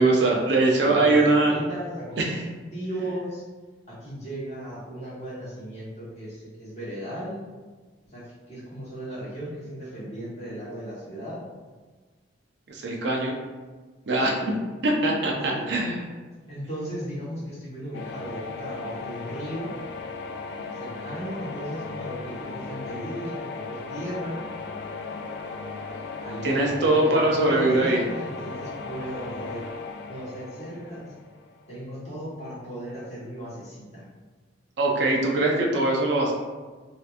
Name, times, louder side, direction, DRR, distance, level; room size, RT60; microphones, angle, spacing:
voice 1, 0.0-1.5 2.2-2.4 12.7-13.3 14.1-14.3 14.8-16.0 26.4-28.0 34.8-36.3, right 2 dB, 60° right, 0 dB, 0.5 m, -22 dB
voice 2, 0.8-3.4 3.9-7.4 8.1-11.4 14.2-14.5 15.5-15.7 16.5-19.7 20.7-24.4 26.2-29.7 30.1-31.1 31.7-34.0, right 1 dB, 35° left, -10 dB, 1.4 m, -36 dB
sound 1, 17.9-31.8, left 4 dB, 60° left, 0.3 m, -37 dB
3.2 x 2.9 x 2.4 m, 1.3 s
head